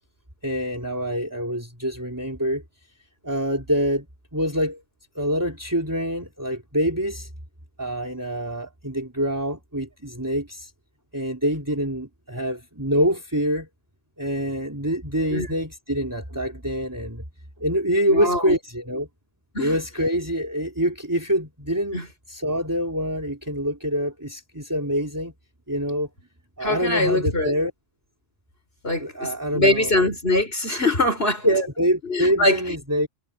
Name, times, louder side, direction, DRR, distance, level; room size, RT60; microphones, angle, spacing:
voice 1, 0.4-2.6 3.2-4.1 4.3-4.8 5.2-7.3 7.8-10.7 11.1-13.7 14.2-17.2 17.6-19.1 19.6-22.0 22.3-25.3 25.7-26.1 26.6-27.7 29.0-30.1 31.4-33.1, equal, 15° right, 3.7 m, -25 dB
voice 2, 18.1-18.6 19.5-19.8 21.9-22.1 26.6-27.5 28.8-31.5 32.1-32.8, left 2 dB, 55° left, 6.1 m, -23 dB
omnidirectional pair, 1.2 m